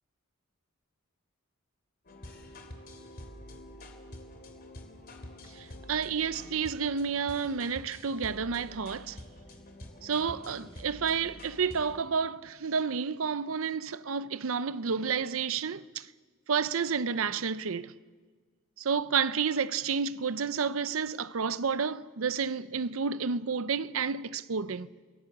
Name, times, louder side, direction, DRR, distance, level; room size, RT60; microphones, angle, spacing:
sound 1, 2.0-12.0, left 1 dB, 45° left, 2.9 m, -47 dB
voice 1, 5.6-9.2 10.0-16.1 16.5-17.9 18.8-24.9, right 6 dB, 75° right, 0.6 m, -30 dB
29.5 x 17.5 x 7.3 m
head